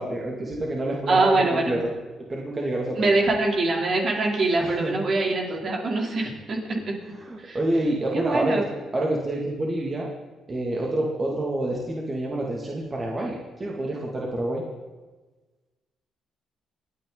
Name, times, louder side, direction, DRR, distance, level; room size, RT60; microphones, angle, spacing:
voice 1, 0.0-1.9 2.3-3.1 4.6-4.9 7.1-8.7 8.9-10.1 10.5-14.6, right 1 dB, 30° right, -2 dB, 2.5 m, -27 dB
voice 2, 1.1-1.6 3.0-7.0 7.4-7.6 8.1-8.6, right 2 dB, 50° right, 0 dB, 3.7 m, -23 dB
28.5 x 9.6 x 4.1 m, 1.2 s
cardioid pair, 90°, 0 cm